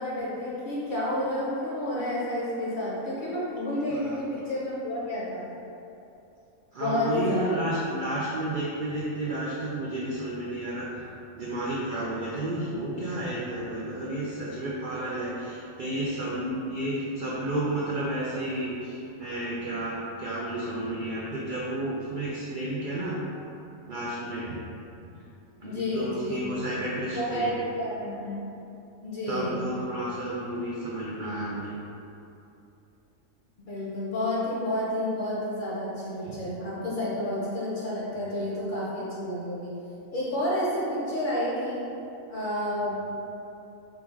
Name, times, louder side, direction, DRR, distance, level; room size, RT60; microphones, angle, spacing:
voice 1, 0.0-5.5 6.8-7.6 25.6-26.8 27.1-28.4 29.0-29.7 33.7-39.7 40.1-41.8 42.3-43.1, left 1 dB, 45° left, -7 dB, 0.7 m, -30 dB
voice 2, 6.7-10.9 11.3-23.2 23.8-24.6 25.0-25.2 25.6-27.5 29.3-31.8 36.2-36.3, right 1 dB, 75° right, -5 dB, 0.4 m, -32 dB
3.8 x 2.3 x 4.5 m, 2.8 s
omnidirectional pair, 1.4 m